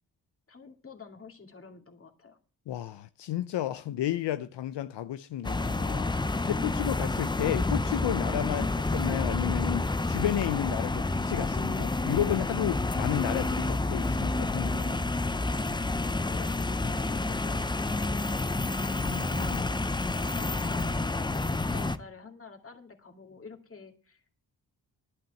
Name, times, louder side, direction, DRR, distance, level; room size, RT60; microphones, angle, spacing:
voice 1, 0.5-2.4 16.2-18.7 19.0-24.3, left 5 dB, 30° left, 2.2 m, -49 dB
voice 2, 2.7-15.1 19.0-19.6, left 12 dB, 80° left, 0.6 m, -32 dB
sound 1, 5.4-22.0, left 2 dB, 10° left, 0.5 m, -29 dB
11.5 x 6.0 x 7.7 m
cardioid pair, 100°, 42 cm